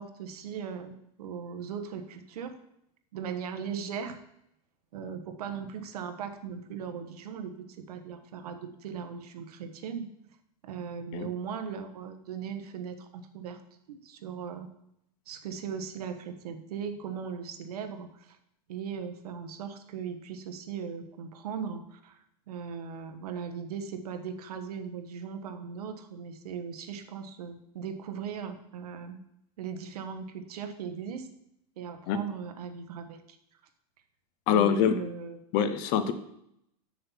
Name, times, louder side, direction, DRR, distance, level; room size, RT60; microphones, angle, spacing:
voice 1, 0.0-2.5 3.1-4.2 4.9-10.1 10.6-13.6 13.9-14.7 15.3-18.4 18.7-29.2 29.6-31.3 31.8-33.2 34.5-35.4, right 7 dB, 70° right, 7 dB, 1.2 m, -38 dB
voice 2, 34.5-35.0 35.5-36.1, left 8 dB, 20° left, 11 dB, 0.4 m, -24 dB
7.3 x 6.6 x 5.7 m, 0.75 s
supercardioid pair, 175°, 20 cm